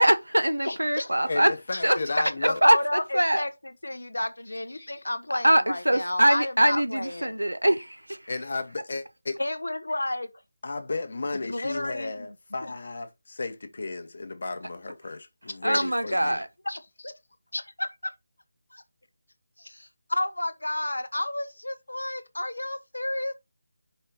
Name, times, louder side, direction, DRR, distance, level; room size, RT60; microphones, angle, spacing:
voice 1, 0.0-1.5 1.8-2.0 2.4-3.4 5.4-8.2 15.6-16.5, right 1 dB, 85° right, 0.8 m, -23 dB
voice 2, 0.6-1.1 1.7-7.3 9.4-10.3 11.5-12.3 12.6-12.7 15.6-16.1 16.7-17.1 17.5-18.1 18.7-18.8 19.6-23.3, left 1 dB, 70° left, 1.1 m, -32 dB
voice 3, 1.3-2.6 4.8-4.9 8.3-9.4 10.6-16.4, left 3 dB, 50° left, 1.4 m, -34 dB
5.7 x 4.3 x 5.3 m
figure-of-eight pair, 155°, 0 cm